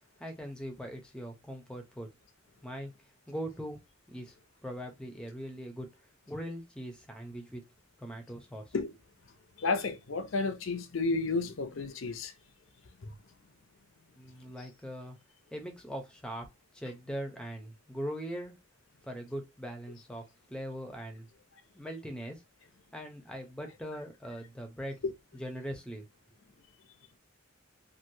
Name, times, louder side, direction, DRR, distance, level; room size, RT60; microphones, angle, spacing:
voice 1, 0.2-2.1 2.6-2.9 3.3-3.8 4.1-4.4 4.6-5.9 6.3-7.6 8.0-8.7 14.1-15.2 15.5-18.6 19.0-21.3 21.7-22.4 22.9-25.0 25.3-26.0, equal, 5° left, 0.6 m, -41 dB
voice 2, 9.6-12.3 13.0-13.1 25.0-25.1, left 3 dB, 70° left, 0.6 m, -32 dB
3.0 x 2.5 x 2.7 m
head